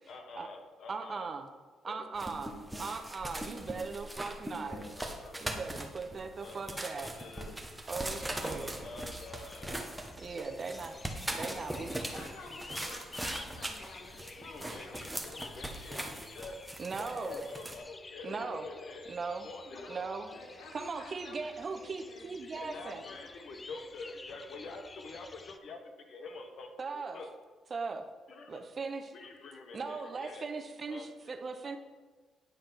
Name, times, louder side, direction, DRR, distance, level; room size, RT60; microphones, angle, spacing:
voice 1, 0.1-1.3 1.9-2.0 2.4-2.5 3.4-3.8 5.0-5.5 6.4-7.6 8.6-9.8 11.0-11.7 12.8-13.0 14.4-16.6 17.0-20.1 20.6-20.7 22.5-27.3 28.3-28.6 29.1-30.5 30.9-31.3, left 3 dB, 60° left, 5 dB, 1.0 m, -47 dB
voice 2, 0.9-1.5 1.8-4.8 5.4-7.2 7.9-8.8 10.2-11.0 11.3-12.0 16.8-17.4 18.2-18.6 19.1-19.5 19.9-20.3 20.7-23.0 26.8-27.2 27.7-28.1 28.5-29.1 29.7-31.8, right 4 dB, 40° right, 6 dB, 0.7 m, -39 dB
sound 1, 2.1-17.8, right 1 dB, 10° right, 0.9 m, -41 dB
voice 3, 4.5-5.0 12.1-15.3 20.3-22.3 22.8-23.3, left 3 dB, 85° left, 0 dB, 1.5 m, -51 dB
sound 2, 8.1-25.6, left 3 dB, 25° left, 0.4 m, -52 dB
9.0 x 3.4 x 5.9 m, 1.3 s
cardioid pair, 90°, 0 cm